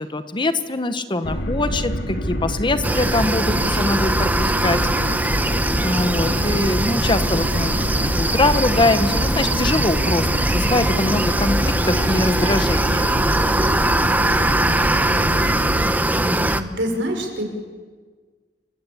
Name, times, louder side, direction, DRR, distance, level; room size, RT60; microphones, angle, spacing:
voice 1, 0.0-4.8 5.2-5.5 5.8-7.7 8.0-13.1 16.2-16.4, left 2 dB, 25° left, 10 dB, 1.0 m, -23 dB
sound 1, 1.2-15.9, equal, 75° left, 2.2 m, -26 dB
sound 2, 2.8-16.6, right 1 dB, 10° right, 0.9 m, -21 dB
Trumpet, 11.8-13.8, right 5 dB, 25° right, 4.2 m, -38 dB
voice 2, 16.3-17.5, equal, 75° right, 3 dB, 5.3 m, -26 dB
28.0 x 16.0 x 8.6 m, 1.5 s
head